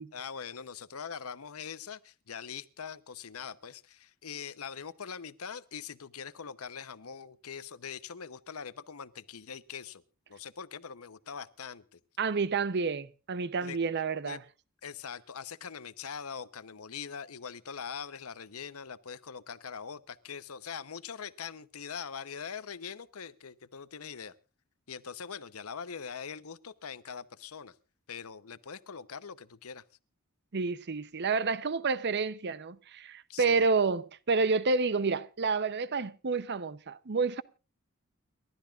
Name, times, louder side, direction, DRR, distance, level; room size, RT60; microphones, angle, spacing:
voice 1, 0.1-10.0 10.3-12.0 13.6-13.8 14.2-14.4 14.8-24.3 24.9-27.7 28.1-29.8 33.3-33.7, left 6 dB, 85° left, 0.9 m, -42 dB
voice 2, 12.2-14.4 30.5-37.4, right 4 dB, 50° right, 0.7 m, -29 dB
30.0 x 12.5 x 2.4 m
head